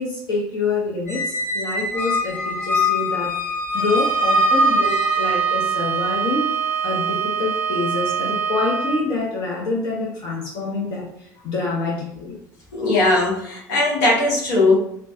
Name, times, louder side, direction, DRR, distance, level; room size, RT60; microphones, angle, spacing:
voice 1, 0.0-12.4, left 3 dB, 50° left, -3 dB, 0.7 m, -27 dB
Squeak, 1.1-5.5, left 2 dB, 20° left, 1.4 m, -23 dB
Bowed string instrument, 3.7-9.1, right 7 dB, 20° right, 0.5 m, -24 dB
voice 2, 12.7-14.8, left 2 dB, 70° left, -3 dB, 1.0 m, -18 dB
3.2 x 2.1 x 2.6 m, 0.72 s
figure-of-eight pair, 60°, 10 cm